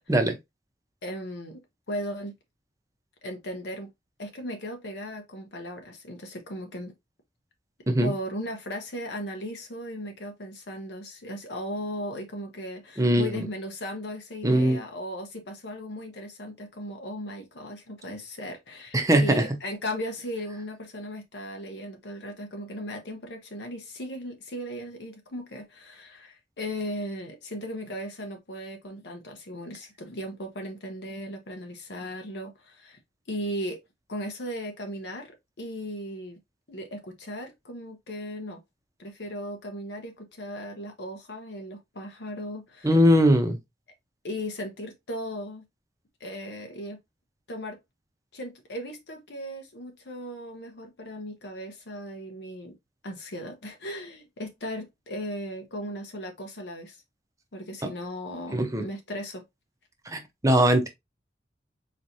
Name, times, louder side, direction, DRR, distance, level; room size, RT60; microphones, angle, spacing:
voice 1, 1.0-1.6 1.9-2.3 3.2-3.9 4.2-6.9 8.0-33.0 33.3-33.8 34.1-36.4 36.7-38.6 39.0-43.0 44.2-45.7 46.2-47.0 47.5-47.8 48.3-52.8 53.0-57.0 57.5-59.4, equal, 70° left, 1.0 m, -37 dB
voice 2, 13.0-13.4 14.4-14.8 18.9-19.4 42.8-43.6 57.8-57.9 58.5-58.9 60.1-60.9, equal, 20° right, 0.8 m, -21 dB
4.3 x 3.1 x 2.7 m
head